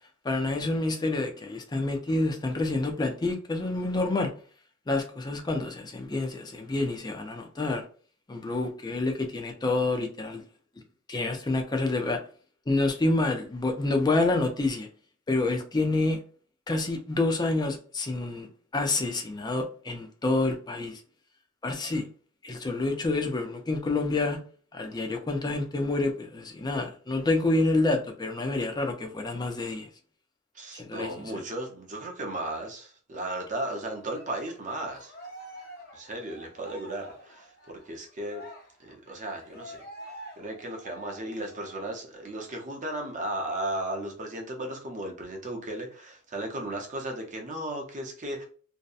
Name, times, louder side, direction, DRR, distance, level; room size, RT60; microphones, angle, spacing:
voice 1, 0.2-4.3 4.9-7.8 8.3-10.4 11.1-12.2 12.7-14.9 15.3-16.2 16.7-18.5 18.7-21.0 21.6-22.0 22.4-24.4 24.7-29.9 30.8-31.4, left 2 dB, 20° left, 0.4 m, -28 dB
voice 2, 30.5-35.1 35.9-38.4 38.8-39.8 40.4-48.4, right 1 dB, 40° right, 0.6 m, -35 dB
Cheering, 34.0-42.0 42.3-42.5 42.9-43.9, right 1 dB, 50° left, 0.8 m, -48 dB
2.7 x 2.1 x 2.4 m
head